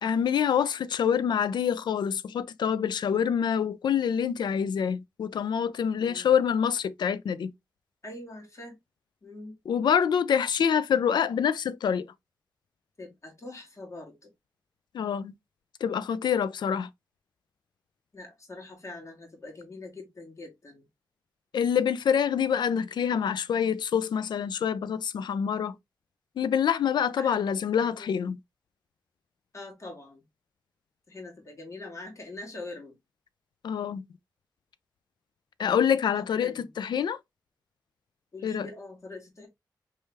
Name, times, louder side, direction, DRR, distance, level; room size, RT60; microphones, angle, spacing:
voice 1, 0.0-7.5 9.7-12.1 14.9-15.3 15.8-16.9 21.5-25.7 26.4-28.4 33.6-34.0 35.6-37.2 38.4-38.7, left 8 dB, 85° left, 0.4 m, -26 dB
voice 2, 8.0-8.8 9.2-9.6 13.0-14.3 18.1-20.8 27.2-27.4 27.9-28.1 29.5-30.2 31.1-33.0 36.2-36.7 38.3-39.5, left 2 dB, 45° left, 2.3 m, -43 dB
4.5 x 3.3 x 3.2 m
cardioid pair, 70°, 7 cm